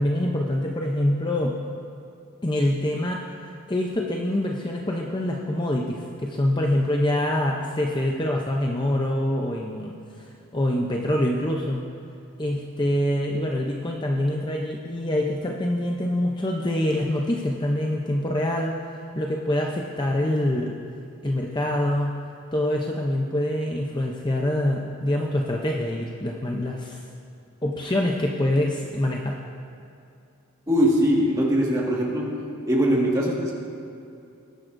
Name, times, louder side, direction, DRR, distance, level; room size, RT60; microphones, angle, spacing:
voice 1, 0.0-1.6 2.4-3.2 3.7-11.8 12.4-18.7 19.1-20.8 21.2-22.2 22.5-27.1 27.6-29.4, left 1 dB, 20° left, 0 dB, 0.6 m, -25 dB
voice 2, 30.7-32.3 32.7-33.5, equal, 15° right, -3 dB, 1.7 m, -21 dB
19.5 x 10.5 x 2.6 m, 2.5 s
head